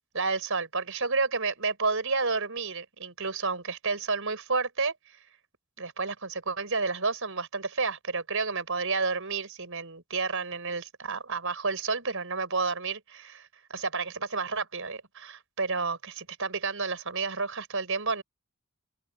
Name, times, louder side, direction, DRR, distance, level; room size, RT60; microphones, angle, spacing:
voice 1, 0.1-4.9 5.8-18.2, right 4 dB, 65° right, 5.9 m, -30 dB
open air
head